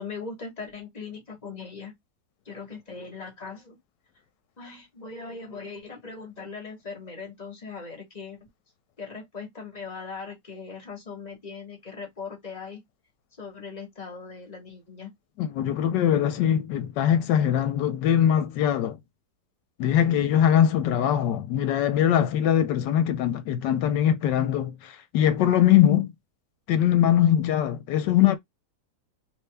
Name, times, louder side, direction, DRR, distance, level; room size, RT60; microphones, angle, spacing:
voice 1, 0.0-2.0 2.4-3.8 4.6-8.4 9.0-12.8 13.4-15.1 18.4-18.5, left 4 dB, 25° left, 1.3 m, -39 dB
voice 2, 15.4-19.0 19.8-26.1 26.7-28.4, left 10 dB, 85° left, 1.3 m, -22 dB
3.3 x 2.7 x 3.3 m
omnidirectional pair, 1.8 m